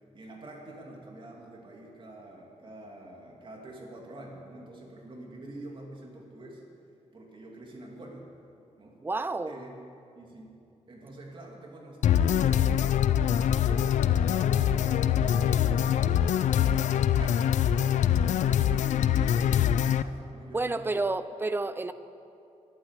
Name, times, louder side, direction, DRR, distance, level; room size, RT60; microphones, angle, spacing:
voice 1, 0.1-6.6 7.1-8.3 8.8-9.0 9.5-9.7 10.1-10.5 10.9-18.1 18.4-21.1, right 1 dB, 45° right, -1 dB, 2.7 m, -47 dB
voice 2, 9.0-9.6 20.5-21.9, right 3 dB, 20° right, 12 dB, 0.6 m, -30 dB
sound 1, 12.0-20.0, left 9 dB, 90° left, 0.4 m, -24 dB
12.0 x 11.5 x 8.2 m, 2.6 s
wide cardioid pair, 130°, 12 cm